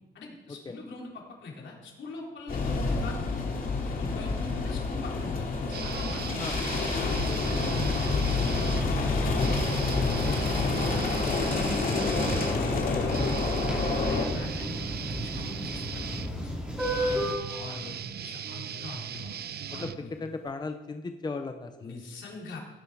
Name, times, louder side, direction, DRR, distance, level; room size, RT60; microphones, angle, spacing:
voice 1, 0.1-3.3 3.8-6.4 7.0-9.4 10.5-12.3 12.9-13.5 13.8-16.2 17.0-19.3 19.7-20.1 21.8-22.6, left 3 dB, 75° left, -2 dB, 3.8 m, -43 dB
sound 1, 2.5-14.3, left 3 dB, 50° left, 2.5 m, -28 dB
sound 2, 5.7-8.9 9.3-20.5, right 8 dB, 55° right, 0.6 m, -39 dB
voice 2, 7.3-7.7 10.2-10.7 16.9-17.2 19.7-19.9 20.2-21.9, left 3 dB, 20° left, 7 dB, 0.7 m, -38 dB
sound 3, 9.9-17.3, equal, 5° right, 4.2 m, -34 dB
16.5 x 10.0 x 4.9 m, 1.1 s
wide cardioid pair, 145°, 19 cm